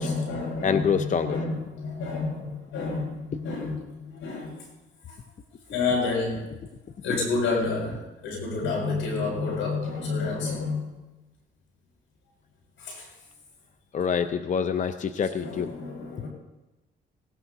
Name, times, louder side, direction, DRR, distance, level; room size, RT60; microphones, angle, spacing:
voice 1, 0.0-4.7 5.1-5.2 5.7-6.5 7.0-11.0 12.8-13.1 15.4-16.3, left 3 dB, 85° left, 0 dB, 6.1 m, -29 dB
voice 2, 0.6-1.4 13.9-15.7, left 6 dB, 40° left, 9 dB, 0.6 m, -26 dB
19.0 x 17.0 x 2.8 m, 1.0 s
cardioid pair, 90°, 20 cm